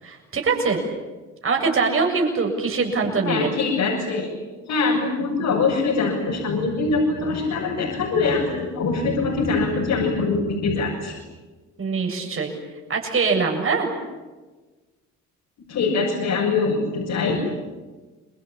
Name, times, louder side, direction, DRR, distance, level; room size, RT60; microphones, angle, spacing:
voice 1, 0.0-0.8 1.4-3.5 11.8-12.5 12.9-13.9, right 4 dB, 45° right, 1 dB, 7.5 m, -23 dB
voice 2, 3.2-4.3 4.7-11.2 15.7-17.4, left 4 dB, 80° left, -2 dB, 7.2 m, -23 dB
28.0 x 23.0 x 8.9 m, 1.2 s
cardioid pair, 90°, 30 cm